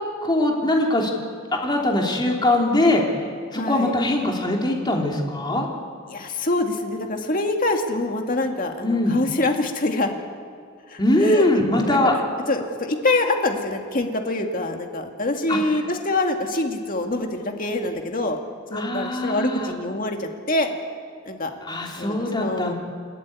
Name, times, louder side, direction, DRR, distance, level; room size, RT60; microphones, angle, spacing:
voice 1, 0.2-1.1 1.5-3.2 3.5-5.7 8.8-9.1 11.0-12.1 15.5-15.6 18.7-19.8 21.6-22.7, left 1 dB, 20° left, 0 dB, 3.2 m, -21 dB
voice 2, 3.5-3.9 6.1-10.2 10.9-18.4 18.7-20.7 21.3-21.5 22.0-22.7, left 2 dB, 45° left, 3 dB, 2.2 m, -25 dB
29.0 x 11.5 x 9.6 m, 2.3 s
head